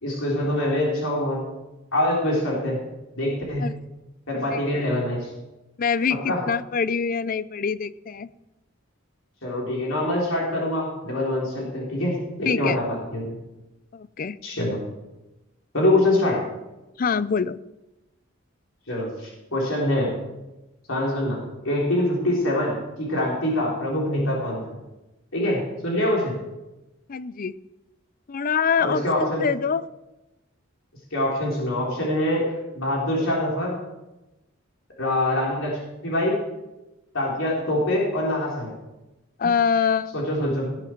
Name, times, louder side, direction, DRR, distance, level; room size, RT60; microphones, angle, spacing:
voice 1, 0.0-1.4 1.9-2.8 3.2-3.7 4.3-5.3 6.3-6.4 9.4-13.4 14.4-14.8 15.7-16.4 18.9-20.1 20.9-24.7 25.3-26.3 28.8-29.4 31.1-32.5 32.7-33.8 35.0-36.4 37.1-38.7 40.1-40.7, left 1 dB, 85° left, -4 dB, 3.8 m, -24 dB
voice 2, 5.8-8.3 12.5-12.8 13.9-14.4 17.0-17.6 27.1-27.6 28.3-29.9 39.4-40.2, left 6 dB, 45° left, 17 dB, 0.5 m, -24 dB
18.0 x 8.6 x 4.6 m, 1.0 s
head